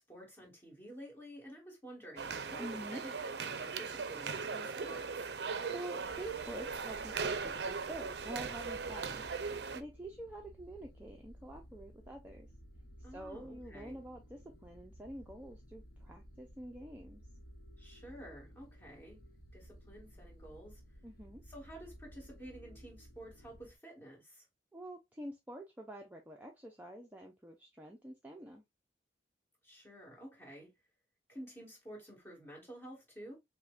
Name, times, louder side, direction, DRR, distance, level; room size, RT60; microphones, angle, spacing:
voice 1, 0.0-5.3 13.0-14.0 17.8-19.2 19.5-20.8 21.5-24.4 29.6-30.7 31.3-33.4, equal, 15° left, 1.6 m, -51 dB
sound 1, 2.2-9.8, right 5 dB, 65° right, 0.4 m, -39 dB
voice 2, 2.6-3.0 5.7-9.2 9.7-12.5 13.1-17.2 21.0-21.4 24.7-28.6, right 1 dB, 10° right, 0.4 m, -47 dB
sound 2, 6.0-23.8, equal, 50° left, 0.7 m, -56 dB
5.7 x 2.1 x 2.3 m
head